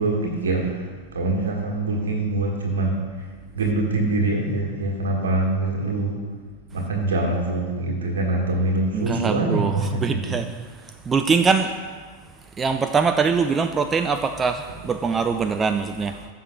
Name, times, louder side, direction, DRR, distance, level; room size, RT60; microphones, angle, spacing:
voice 1, 0.0-6.2 6.7-10.4, right 2 dB, 65° right, 1 dB, 1.6 m, -24 dB
voice 2, 8.9-10.5 10.7-11.7 12.6-16.3, right 5 dB, 20° right, 8 dB, 0.3 m, -23 dB
14.5 x 6.4 x 2.3 m, 1.5 s
figure-of-eight pair, 90°, 0 cm